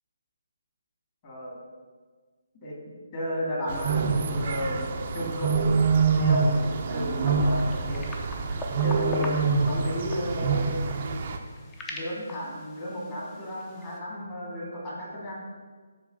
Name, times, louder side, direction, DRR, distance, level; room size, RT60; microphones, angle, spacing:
voice 1, 1.2-1.6 2.6-2.8 3.1-4.9 5.1-5.5 6.2-8.1 8.8-11.2 11.9-15.3, equal, 30° left, -4 dB, 2.0 m, -33 dB
sound 1, 3.7-11.4, right 4 dB, 40° right, 0.6 m, -26 dB
sound 2, 6.1-14.0, left 1 dB, 15° left, 0.7 m, -42 dB
8.0 x 3.2 x 5.3 m, 1.5 s
figure-of-eight pair, 155°, 0 cm